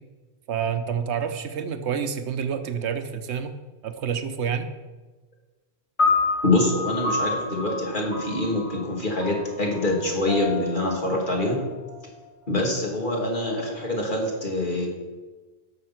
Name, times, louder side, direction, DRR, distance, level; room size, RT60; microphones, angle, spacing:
voice 1, 0.5-3.5 3.8-4.7, right 7 dB, 90° right, 9 dB, 1.1 m, -28 dB
sound 1, 6.0-12.4, left 3 dB, 30° left, 2.5 m, -29 dB
voice 2, 6.4-11.6 12.5-14.9, left 1 dB, 50° left, -1 dB, 2.6 m, -25 dB
12.5 x 6.5 x 5.8 m, 1.3 s
omnidirectional pair, 1.1 m